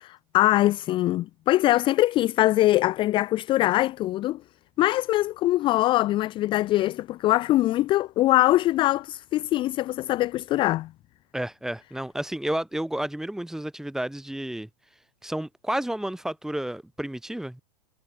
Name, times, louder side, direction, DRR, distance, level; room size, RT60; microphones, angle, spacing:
voice 1, 0.0-4.4 4.8-10.9, left 16 dB, 25° left, 0.4 m, -22 dB
voice 2, 11.3-14.7 15.2-17.6, right 1 dB, ahead, 1.8 m, -31 dB
hypercardioid pair, 125°, 21 cm